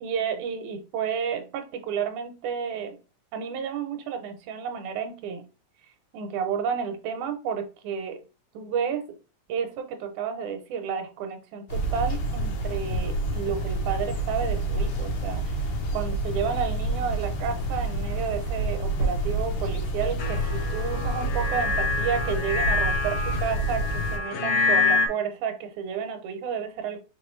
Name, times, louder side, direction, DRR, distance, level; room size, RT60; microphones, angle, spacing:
voice 1, 0.0-3.0 3.3-5.4 6.1-8.2 8.5-9.0 9.5-15.6 15.9-27.0, right 7 dB, 80° right, 6 dB, 2.0 m, -31 dB
sound 1, 11.7-24.2, right 1 dB, 85° left, 2.6 m, -28 dB
sound 2, 20.2-25.1, left 3 dB, 60° left, 1.5 m, -27 dB
5.3 x 3.2 x 3.1 m, 0.32 s
omnidirectional pair, 3.5 m